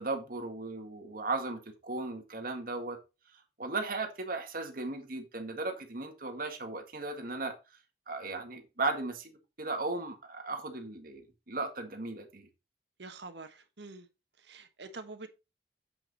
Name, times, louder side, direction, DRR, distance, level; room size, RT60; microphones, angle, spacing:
voice 1, 0.0-3.0 3.6-7.5 8.1-12.5, right 3 dB, 55° right, 1.7 m, -36 dB
voice 2, 13.0-14.1 14.4-15.3, right 3 dB, 80° right, 1.2 m, -46 dB
8.0 x 5.9 x 4.1 m
head